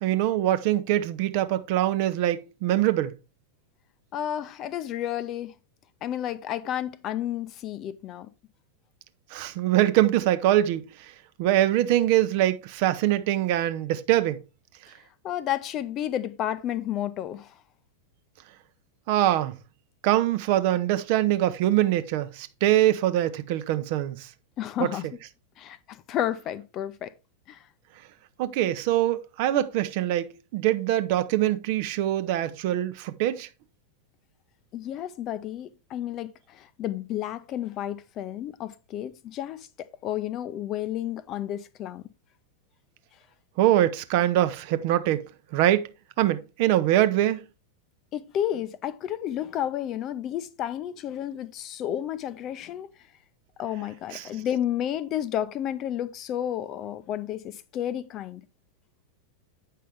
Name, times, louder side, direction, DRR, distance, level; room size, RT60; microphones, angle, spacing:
voice 1, 0.0-3.1 9.3-11.1 11.4-14.4 19.1-19.6 20.0-24.3 24.8-24.9 28.4-33.5 43.6-45.2 45.5-45.9 46.2-47.4 54.1-54.3, right 13 dB, 45° right, 0.7 m, -23 dB
voice 2, 4.1-5.5 6.0-8.3 15.2-17.5 24.6-25.1 25.6-27.1 27.5-27.6 34.7-42.1 48.1-52.9 53.6-58.4, left 11 dB, 35° left, 0.6 m, -31 dB
8.5 x 5.5 x 3.4 m
figure-of-eight pair, 90°, 0 cm